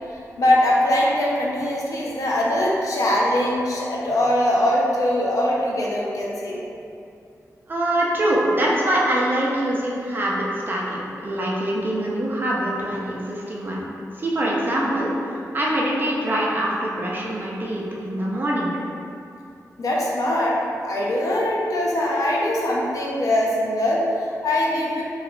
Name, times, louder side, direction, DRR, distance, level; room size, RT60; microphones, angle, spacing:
voice 1, 0.1-6.6 19.8-25.0, left 1 dB, 65° left, -4 dB, 0.5 m, -22 dB
voice 2, 7.7-13.9 14.1-18.7, right 1 dB, 35° right, -4 dB, 0.5 m, -24 dB
3.1 x 2.8 x 2.5 m, 2.6 s
wide cardioid pair, 125°, 6 cm